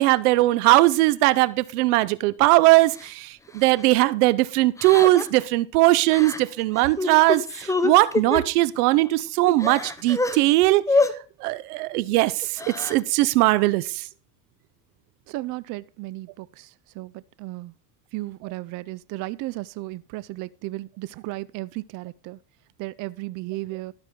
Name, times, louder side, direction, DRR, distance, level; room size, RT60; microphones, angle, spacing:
voice 1, 0.0-10.8 11.4-14.1, right 19 dB, 85° right, 0.7 m, -20 dB
Crying sobbing, 3.0-3.1 3.6-3.8 4.8-5.4 6.1-6.4 6.8-8.4 9.0-9.1 9.4-10.4 10.9-11.1 12.4-13.0, left 3 dB, 5° left, 0.7 m, -26 dB
voice 2, 15.3-17.7 18.1-22.4 22.8-23.9, right 19 dB, 45° right, 0.4 m, -34 dB
13.0 x 6.1 x 3.7 m
supercardioid pair, 105°, 44 cm